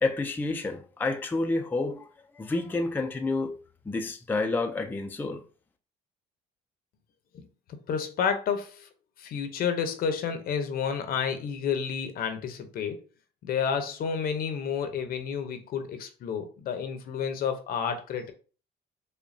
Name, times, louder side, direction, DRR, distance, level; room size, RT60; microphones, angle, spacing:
voice 1, 0.0-2.1 2.4-5.4, left 3 dB, 10° left, 0.4 m, -29 dB
voice 2, 7.3-8.9 9.2-13.0 13.4-18.3, left 7 dB, 60° left, 0.7 m, -30 dB
5.0 x 2.2 x 2.6 m
cardioid pair, 110°, 17 cm